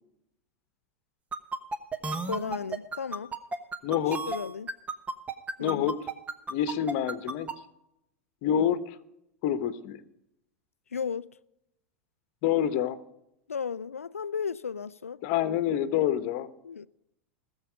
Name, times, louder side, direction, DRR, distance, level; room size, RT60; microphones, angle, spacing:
sound 1, 1.3-7.5, right 3 dB, 20° right, 1.2 m, -32 dB
voice 1, 2.3-3.3 4.2-4.7 5.6-5.9 10.9-11.3 13.5-15.2 16.6-16.9, left 6 dB, 85° left, 0.4 m, -34 dB
voice 2, 3.8-4.2 5.6-5.9 6.5-7.5 8.4-9.0 9.4-10.0 12.4-13.0 15.2-16.5, left 10 dB, 50° left, 1.1 m, -27 dB
20.0 x 7.2 x 5.0 m
hypercardioid pair, 90°, 7 cm